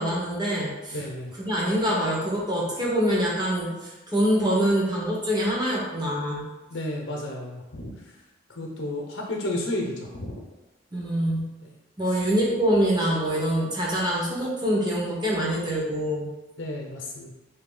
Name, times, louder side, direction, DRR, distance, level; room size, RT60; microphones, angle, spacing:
voice 1, 0.0-1.0 1.4-6.4 10.9-11.4 12.0-16.3, equal, 20° right, -5 dB, 0.9 m, -25 dB
voice 2, 0.9-1.3 6.7-8.0 8.5-10.4 16.6-17.3, left 1 dB, 75° left, 0 dB, 0.7 m, -32 dB
3.5 x 2.8 x 3.8 m, 1.1 s
head